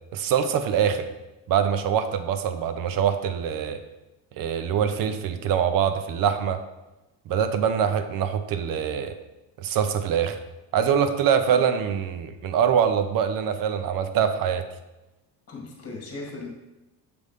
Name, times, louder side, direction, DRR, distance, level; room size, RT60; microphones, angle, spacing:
voice 1, 0.1-1.1 1.5-3.8 4.4-6.6 7.3-9.2 9.6-10.4 10.7-14.7, right 8 dB, 50° right, 9 dB, 0.6 m, -24 dB
voice 2, 15.5-16.5, left 3 dB, 30° left, 0 dB, 1.7 m, -37 dB
6.8 x 3.1 x 5.3 m, 1.0 s
cardioid pair, 140°, 46 cm